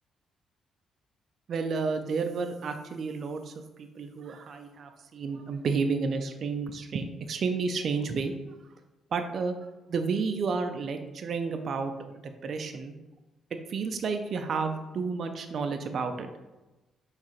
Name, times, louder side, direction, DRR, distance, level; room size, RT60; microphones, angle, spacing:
voice 1, 1.5-8.3 9.1-9.5 9.9-12.9 13.7-16.3, right 4 dB, 55° right, 6 dB, 0.4 m, -31 dB
4.6 x 3.3 x 3.0 m, 1.1 s
cardioid pair, 90°, 0 cm